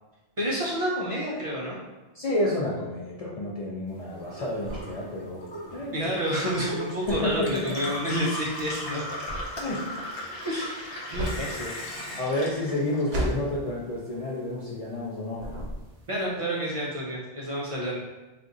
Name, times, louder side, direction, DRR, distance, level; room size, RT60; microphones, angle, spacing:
voice 1, 0.4-1.8 5.9-9.0 10.4-11.7 16.1-18.0, equal, 40° right, -5 dB, 0.5 m, -29 dB
voice 2, 2.1-5.4 5.7-6.1 7.1-7.7 9.6-9.8 12.2-15.4, left 1 dB, 50° left, -6 dB, 0.5 m, -30 dB
sound 1, 3.9-15.1 15.4-16.2, right 1 dB, 80° right, 0.9 m, -36 dB
Gurgling / Water tap faucet / Sink (filling or washing), 4.1-13.7 14.0-14.8, left 1 dB, 65° left, 0.9 m, -38 dB
2.5 x 2.4 x 3.8 m, 1.2 s
omnidirectional pair, 1.0 m